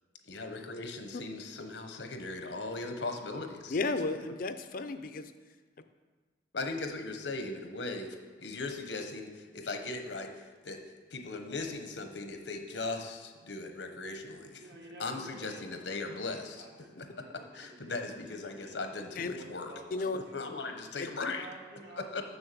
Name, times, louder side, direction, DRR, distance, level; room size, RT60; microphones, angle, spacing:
voice 1, 0.3-3.8 6.5-10.3 10.6-10.8 11.1-14.6 15.0-16.7 17.5-19.7 20.1-21.5 22.0-22.2, left 3 dB, 85° left, 5 dB, 1.0 m, -38 dB
voice 2, 3.7-5.3 19.2-19.4 19.9-20.2 21.0-21.1, left 3 dB, 50° left, 9 dB, 0.5 m, -33 dB
voice 3, 14.5-18.8 19.2-20.8 21.3-22.1, right 1 dB, 70° right, -1 dB, 1.8 m, -51 dB
7.0 x 6.5 x 6.8 m, 1.4 s
head